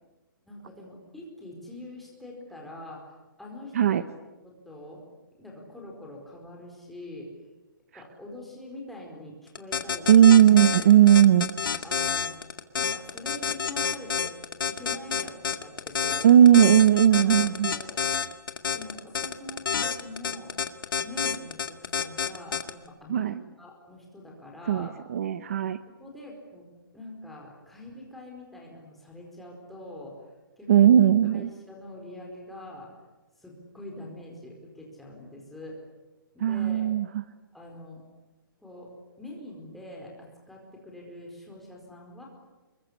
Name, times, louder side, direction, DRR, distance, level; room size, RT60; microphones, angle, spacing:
voice 1, 0.4-3.1 3.4-4.2 4.4-5.0 5.4-7.4 7.9-10.2 10.5-10.9 11.8-12.4 12.8-14.3 14.7-16.3 16.8-16.9 17.2-18.4 18.7-20.5 21.0-24.9 25.9-26.7 26.9-30.2 30.6-31.0 31.3-32.9 33.4-35.8 36.3-37.0 37.5-38.0 38.6-42.3, left 1 dB, ahead, -2 dB, 4.7 m, -44 dB
sound 1, 9.6-22.7, left 6 dB, 65° left, 2.2 m, -28 dB
voice 2, 10.1-11.5 16.2-17.7 23.1-23.4 24.7-25.8 30.7-31.5 36.4-37.2, right 10 dB, 40° right, 13 dB, 0.9 m, -18 dB
26.5 x 22.5 x 10.0 m, 1.1 s
hypercardioid pair, 170°, 12 cm